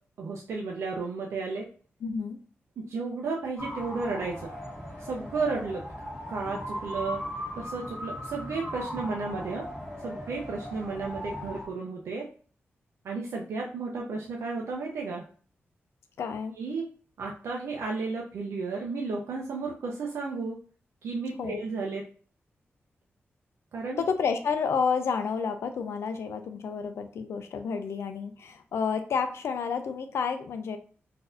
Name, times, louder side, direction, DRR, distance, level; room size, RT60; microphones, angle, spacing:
voice 1, 0.2-1.7 2.9-4.5 5.0-5.8 6.3-7.2 7.5-9.7 10.0-12.3 13.0-15.3 16.6-16.9 17.2-20.6 21.0-22.0 23.7-24.1, right 4 dB, 90° right, -1 dB, 0.5 m, -33 dB
voice 2, 2.0-2.4 16.2-16.6 21.4-21.6 24.0-30.8, left 6 dB, 80° left, 8 dB, 0.4 m, -30 dB
sound 1, 3.6-11.7, equal, ahead, 1.3 m, -38 dB
3.9 x 2.7 x 2.6 m, 0.42 s
wide cardioid pair, 170°, 4 cm